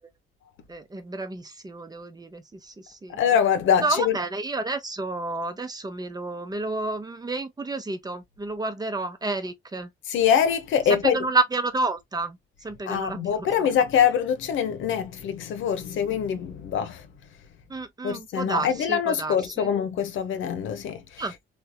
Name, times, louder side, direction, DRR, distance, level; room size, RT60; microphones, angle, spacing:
voice 1, 0.7-3.2 3.8-9.9 10.9-13.5 17.7-19.7 21.2-21.3, right 3 dB, 20° right, 0.8 m, -30 dB
voice 2, 3.1-4.2 10.1-11.2 12.9-17.0 18.0-21.0, left 8 dB, 75° left, 0.9 m, -24 dB
3.3 x 2.7 x 2.2 m
cardioid pair, 90°, 20 cm